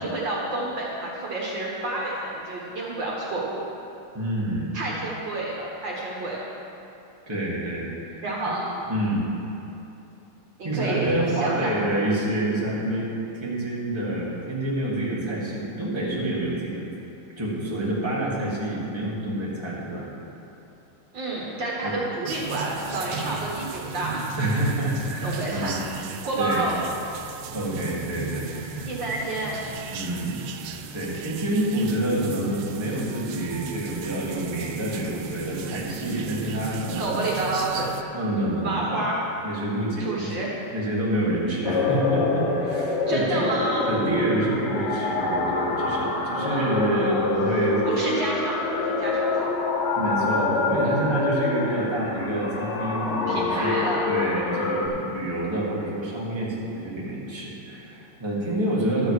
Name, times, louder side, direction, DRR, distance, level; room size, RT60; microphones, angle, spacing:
voice 1, 0.0-3.6 4.7-6.4 8.2-8.7 10.6-11.1 11.4-11.8 21.1-24.3 25.2-25.8 26.2-26.8 28.8-29.6 37.0-37.9 38.6-39.2 40.0-40.5 43.1-43.9 46.4-47.3 47.9-49.5 53.3-54.1 54.4-54.6, right 2 dB, 60° right, -4 dB, 1.9 m, -29 dB
voice 2, 4.1-4.7 6.0-6.1 7.3-8.2 8.9-9.2 10.6-13.1 13.4-16.9 17.4-20.1 21.8-21.9 24.4-25.8 26.4-26.6 27.5-28.9 29.9-37.2 38.1-39.0 39.4-40.3 40.7-43.4 43.9-47.8 49.9-53.8 54.0-59.1, right 1 dB, 15° right, -7 dB, 1.8 m, -27 dB
sound 1, 22.3-38.0, right 5 dB, 85° right, 1.5 m, -36 dB
sound 2, 41.6-54.9, left 3 dB, 55° left, 0.8 m, -26 dB
12.5 x 7.9 x 4.9 m, 2.8 s
omnidirectional pair, 2.4 m